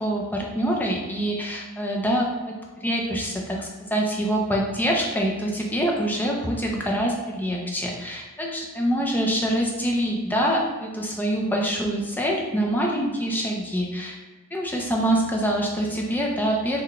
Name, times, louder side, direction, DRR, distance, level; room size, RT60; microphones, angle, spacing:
voice 1, 0.0-14.2 14.5-16.8, equal, 10° left, -1 dB, 0.4 m, -25 dB
3.7 x 2.2 x 3.6 m, 1.2 s
head